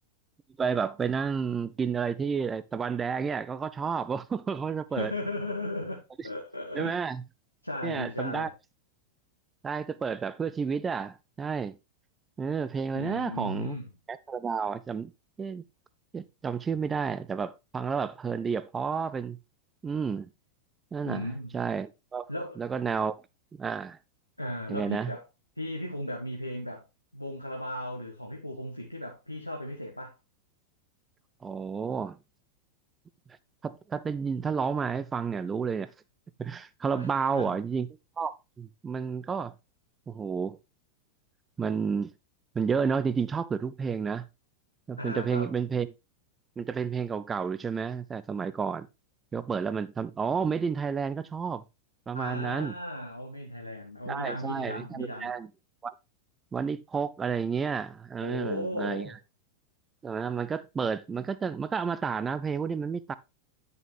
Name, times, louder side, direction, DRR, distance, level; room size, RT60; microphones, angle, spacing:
voice 1, 0.6-5.1 6.7-7.2 7.8-8.5 9.6-11.8 12.4-13.8 14.1-15.1 15.4-15.6 16.1-19.4 19.8-20.3 20.9-21.3 21.5-22.3 22.6-23.2 23.6-24.0 24.7-25.1 31.4-32.2 33.6-35.9 36.4-37.9 38.2-39.5 40.1-40.6 41.6-42.1 42.5-44.2 44.9-45.9 46.6-48.9 49.3-51.6 52.1-52.7 54.1-55.5 55.8-55.9 56.5-59.2 60.0-63.1, right 6 dB, 20° right, 0.5 m, -31 dB
voice 2, 4.9-7.0 7.6-8.5 12.9-13.9 21.0-21.5 22.3-22.6 24.4-25.2 25.6-26.8 27.1-30.1 36.9-37.5 45.0-45.5 52.1-55.4 58.2-59.1, left 1 dB, 85° left, 1.3 m, -36 dB
10.5 x 6.8 x 3.3 m
figure-of-eight pair, 90°, 0 cm